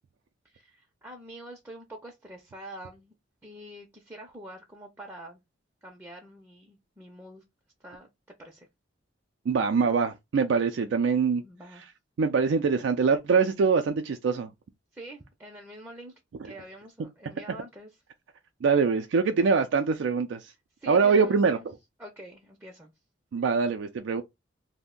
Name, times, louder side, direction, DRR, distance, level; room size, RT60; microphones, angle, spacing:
voice 1, 0.4-3.1 3.4-5.4 5.8-7.4 7.8-8.1 8.4-8.7 11.4-11.8 14.9-16.1 16.4-17.9 20.8-21.6 22.0-22.9, right 1 dB, 10° right, 0.5 m, -45 dB
voice 2, 9.5-11.4 12.2-14.5 18.6-20.5 20.9-21.6 23.3-24.2, right 5 dB, 75° right, 0.3 m, -24 dB
2.5 x 2.1 x 3.6 m
head